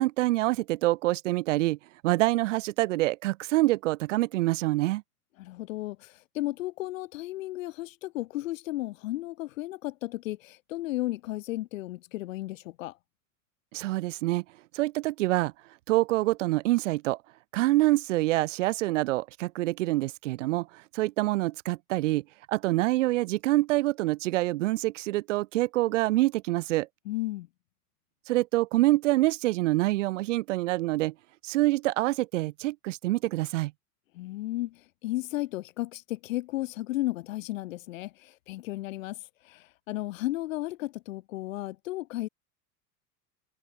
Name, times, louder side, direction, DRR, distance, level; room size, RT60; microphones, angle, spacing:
voice 1, 0.0-1.8 2.0-5.0 13.7-14.4 14.7-15.5 15.9-17.2 17.5-26.9 28.3-31.1 31.4-33.7, right 18 dB, 55° right, 0.6 m, -26 dB
voice 2, 5.4-12.9 27.1-27.5 34.1-42.3, left 17 dB, 55° left, 0.7 m, -34 dB
figure-of-eight pair, 80°, 46 cm